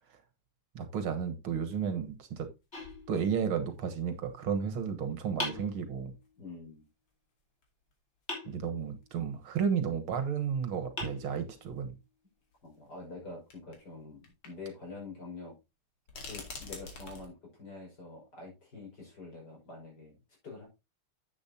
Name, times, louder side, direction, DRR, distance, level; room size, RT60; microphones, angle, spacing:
voice 1, 0.8-2.5 3.1-6.1 8.5-11.9, right 7 dB, 70° right, 2.1 m, -32 dB
sound 1, 2.4-2.5 2.8-3.7 4.4-4.5 6.2-6.3 7.6-7.7 7.9-8.0 9.0-9.1 9.4-9.5 10.9-11.0 12.5-12.6 13.5-13.8 14.2-14.5 14.8-14.9 16.1-17.3, left 4 dB, 75° left, 3.4 m, -46 dB
sound 2, 2.7-3.7 5.4-6.4 8.3-9.2 10.4-10.5 11.0-11.9, left 2 dB, 30° left, 3.8 m, -42 dB
voice 2, 6.4-6.8 12.6-15.5 16.3-20.1 20.4-20.7, left 3 dB, 45° left, 6.1 m, -46 dB
10.5 x 8.2 x 2.7 m
omnidirectional pair, 2.4 m